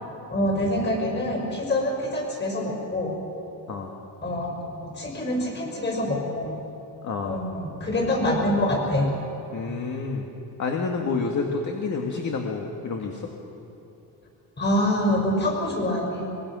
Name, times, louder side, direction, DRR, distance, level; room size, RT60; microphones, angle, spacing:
voice 1, 0.3-3.1 4.2-6.6 7.3-9.1 14.6-16.3, left 1 dB, 25° left, 1 dB, 6.4 m, -25 dB
voice 2, 7.0-7.4 9.5-10.3 10.6-13.2, left 4 dB, 45° left, 1 dB, 2.1 m, -29 dB
24.0 x 22.0 x 6.4 m, 3.0 s
cardioid pair, 135°, 41 cm